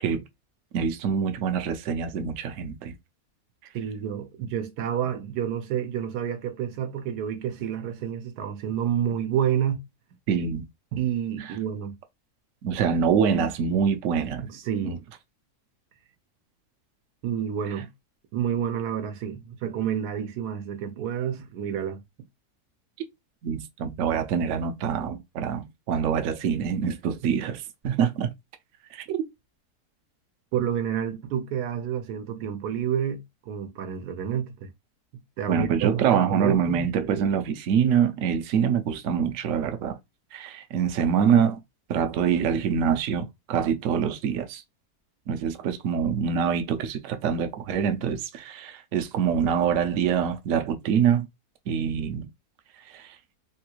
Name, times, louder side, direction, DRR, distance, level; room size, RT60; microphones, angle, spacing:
voice 1, 0.7-3.0 10.3-10.7 11.4-11.5 12.6-14.4 14.8-15.0 23.4-28.3 28.9-29.2 35.5-40.0 40.3-41.6 41.9-44.6 45.3-51.3 51.7-52.3 52.9-53.2, right 7 dB, 70° right, 0.9 m, -25 dB
voice 2, 3.7-9.8 10.9-11.9 14.4-15.0 17.2-17.9 18.3-22.0 30.5-34.7 35.4-36.9, right 9 dB, 85° right, 1.2 m, -29 dB
3.5 x 2.3 x 2.8 m
omnidirectional pair, 1.6 m